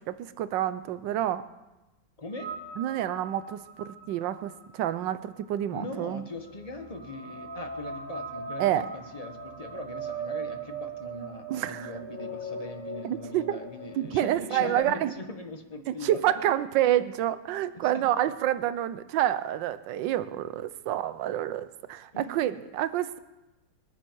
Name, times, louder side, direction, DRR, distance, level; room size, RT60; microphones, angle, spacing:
voice 1, 0.0-1.5 2.8-6.2 8.6-8.8 11.5-11.9 13.0-13.6 14.0-15.1 15.9-23.2, right 12 dB, 80° right, 14 dB, 1.4 m, -28 dB
voice 2, 2.2-2.5 5.7-16.5 17.7-18.3 22.1-22.4, left 1 dB, 25° left, 6 dB, 1.1 m, -40 dB
sound 1, 2.3-14.8, right 3 dB, 25° right, 5.1 m, -40 dB
26.5 x 9.9 x 4.6 m, 1.0 s
omnidirectional pair, 2.0 m